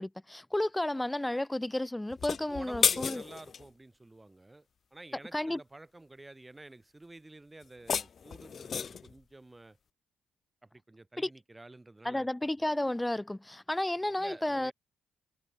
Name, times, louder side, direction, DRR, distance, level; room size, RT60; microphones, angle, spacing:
voice 1, 0.0-3.2 5.3-5.6 11.2-11.3 12.0-14.7, left 1 dB, 10° left, 1.1 m, -32 dB
sound 1, 2.1-3.7 7.6-9.1, left 6 dB, 50° left, 0.6 m, -32 dB
voice 2, 2.5-4.7 4.9-9.8 10.6-12.3 14.2-14.7, right 2 dB, 15° right, 4.7 m, -50 dB
cardioid pair, 90°, 0 cm